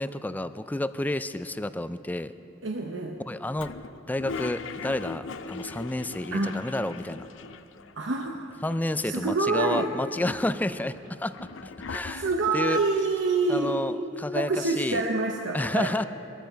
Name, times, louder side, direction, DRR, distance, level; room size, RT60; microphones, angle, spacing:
voice 1, 0.0-2.3 3.3-3.7 4.1-7.2 8.6-12.3 12.5-12.8 13.5-15.0 15.5-16.0, left 1 dB, 10° left, 13 dB, 0.3 m, -30 dB
voice 2, 2.6-3.2 6.3-6.6 7.9-8.4 9.0-9.9 12.1-13.8 14.3-15.9, right 3 dB, 70° right, 2 dB, 0.9 m, -26 dB
Toilet flush, 3.6-7.9 8.2-8.3 8.5-9.3 9.9-12.7, left 4 dB, 80° left, 0.5 m, -40 dB
22.0 x 14.0 x 4.5 m, 2.9 s
head